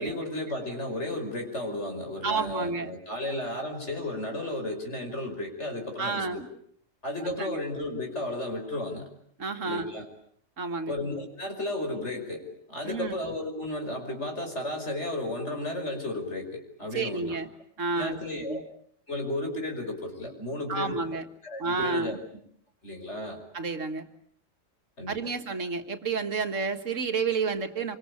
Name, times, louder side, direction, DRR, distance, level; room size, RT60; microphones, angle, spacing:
voice 1, 0.0-6.3 7.0-9.0 9.6-10.1 10.9-17.4 18.0-18.6 19.1-20.9 21.4-22.2 22.8-23.4 25.0-25.2, left 1 dB, 60° left, 4 dB, 5.9 m, -33 dB
voice 2, 2.2-2.9 6.0-6.5 7.2-7.6 9.4-9.9 10.6-10.9 12.8-13.2 16.9-17.5 17.8-18.6 20.7-21.2 21.6-22.2 23.5-24.1 25.1-28.0, right 4 dB, 70° right, 7 dB, 2.1 m, -30 dB
26.5 x 25.5 x 8.5 m, 0.65 s
omnidirectional pair, 1.4 m